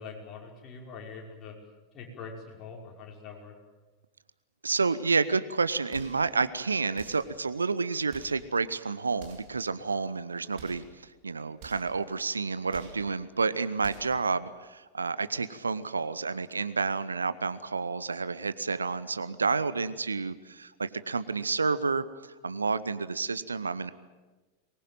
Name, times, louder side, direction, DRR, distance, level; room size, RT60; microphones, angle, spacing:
voice 1, 0.0-1.6 1.9-3.5, left 5 dB, 30° left, 0 dB, 5.7 m, -43 dB
voice 2, 4.6-23.9, right 4 dB, 75° right, 15 dB, 0.9 m, -30 dB
sound 1, 5.9-6.3 6.9-7.4 8.1-8.5 9.1-9.6 10.5-10.9 11.6-12.0 12.7-13.1 13.8-14.2, right 6 dB, 45° right, 4.8 m, -49 dB
23.5 x 20.5 x 9.1 m, 1.2 s
figure-of-eight pair, 90°, 0 cm